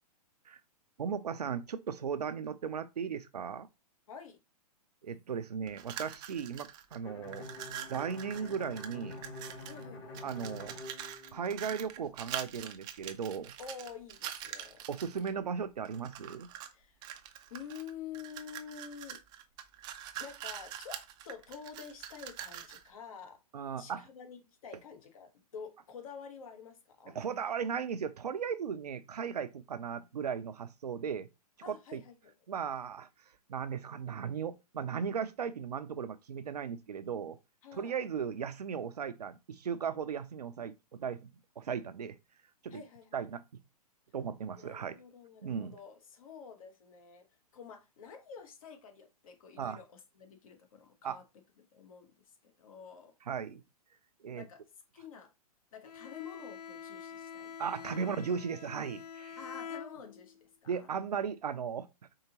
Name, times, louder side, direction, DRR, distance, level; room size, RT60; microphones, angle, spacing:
voice 1, 1.0-3.7 5.0-7.5 7.9-9.2 10.2-10.8 11.3-13.5 14.9-16.5 23.5-24.0 27.1-31.3 31.7-32.0 32.5-33.1 33.5-37.4 37.7-41.3 41.6-42.2 42.6-42.8 43.1-43.6 44.1-45.0 45.4-45.8 49.6-49.8 51.0-51.2 53.3-53.6 54.2-54.4 57.6-59.4 60.7-61.9, right 7 dB, 80° right, 0.5 m, -36 dB
voice 2, 4.1-4.4 9.7-10.2 13.6-14.8 16.7-17.0 17.5-19.2 20.2-23.4 23.8-27.2 31.6-32.3 37.6-38.0 42.7-43.3 44.5-47.3 47.5-51.2 51.6-53.2 54.3-54.6 54.9-55.3 55.7-58.1 59.4-60.9, left 6 dB, 60° left, 1.2 m, -49 dB
sound 1, 5.7-7.0 7.2-9.8 10.1-15.3 15.9-16.7 17.0-22.9, right 10 dB, 20° right, 0.4 m, -44 dB
Bowed string instrument, 7.0-11.9, left 2 dB, 40° left, 1.8 m, -47 dB
Bowed string instrument 2, 55.8-60.4, left 7 dB, 75° left, 0.5 m, -46 dB
4.7 x 2.9 x 2.8 m
hypercardioid pair, 125°, 20 cm